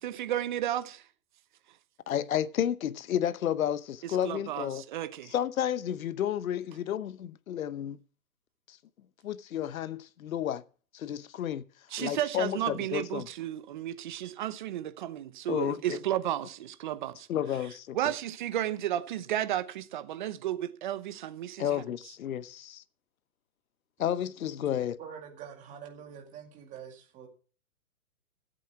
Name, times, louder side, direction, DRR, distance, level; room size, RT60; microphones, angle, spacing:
voice 1, 0.0-1.0 4.0-5.3 11.9-17.3 17.9-21.8, right 12 dB, 30° right, 0.9 m, -33 dB
voice 2, 2.1-4.8 5.3-8.0 8.7-8.8 9.2-10.6 10.9-11.6 12.0-13.3 15.5-16.0 17.3-18.0 21.6-22.8 24.0-25.0, left 10 dB, 65° left, 0.9 m, -31 dB
voice 3, 25.0-27.3, right 8 dB, 15° right, 2.1 m, -45 dB
13.0 x 7.9 x 5.8 m
hypercardioid pair, 160°, 45 cm